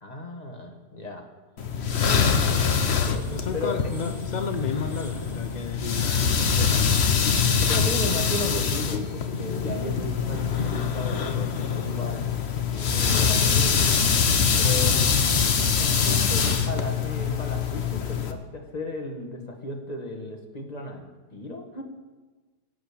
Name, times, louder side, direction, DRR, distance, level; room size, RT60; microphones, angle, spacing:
voice 1, 0.0-1.3 2.1-2.5 3.0-3.8 7.6-12.3 12.7-14.0 14.6-15.0 15.7-21.8, left 1 dB, 20° left, 3 dB, 1.7 m, -35 dB
sound 1, 1.6-18.3, left 6 dB, 45° left, 1.0 m, -24 dB
sound 2, 1.7-8.5, right 1 dB, ahead, 1.4 m, -44 dB
voice 2, 3.3-6.9, left 5 dB, 60° left, 7 dB, 0.4 m, -32 dB
15.0 x 8.5 x 8.6 m, 1.3 s
omnidirectional pair, 2.0 m